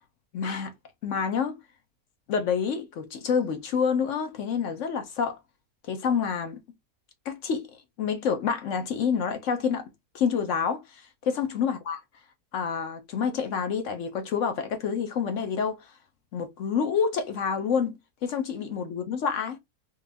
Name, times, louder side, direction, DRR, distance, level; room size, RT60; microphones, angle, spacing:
voice 1, 0.3-0.7 1.0-1.6 2.3-5.4 5.9-6.6 7.3-7.7 8.0-9.9 10.1-10.8 11.3-12.0 12.5-15.8 16.3-19.6, left 6 dB, 60° left, 1.1 m, -28 dB
3.8 x 2.6 x 3.4 m
omnidirectional pair, 1.6 m